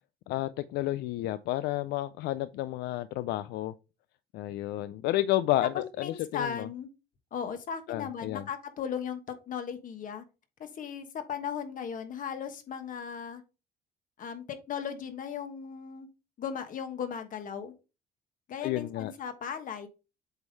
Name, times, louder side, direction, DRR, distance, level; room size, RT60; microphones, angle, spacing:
voice 1, 0.3-3.7 4.3-6.7 7.9-8.4 18.6-19.1, left 15 dB, 80° left, 0.4 m, -31 dB
voice 2, 6.0-6.9 7.3-10.2 10.6-13.4 14.2-16.1 16.4-17.7 18.5-19.9, left 7 dB, 50° left, 1.3 m, -37 dB
8.0 x 3.6 x 4.0 m
cardioid pair, 110°, 17 cm